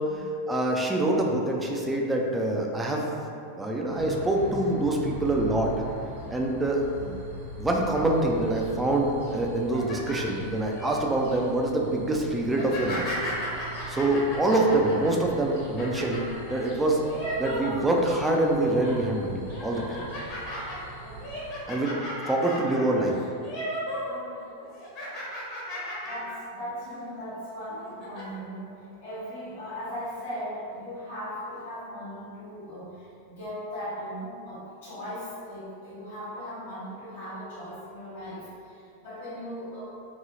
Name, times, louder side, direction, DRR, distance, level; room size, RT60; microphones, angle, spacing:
voice 1, 0.0-3.1 3.5-5.7 6.3-6.9 7.6-13.1 13.9-16.2 16.5-17.0 17.4-20.0 21.7-23.2, right 1 dB, 10° right, 0 dB, 0.4 m, -25 dB
sound 1, 3.9-21.6, right 3 dB, 65° right, 1.0 m, -41 dB
sound 2, 9.5-10.9 11.4-11.7 12.5-18.2 18.6-19.1 19.5-24.2 24.5-26.4 26.8-27.0 27.7-28.2, equal, 35° left, 0.8 m, -36 dB
voice 2, 20.9-21.3 24.0-24.4 26.0-39.8, equal, 60° left, -9 dB, 1.3 m, -38 dB
2.9 x 2.6 x 2.5 m, 2.5 s
figure-of-eight pair, 90°, 0 cm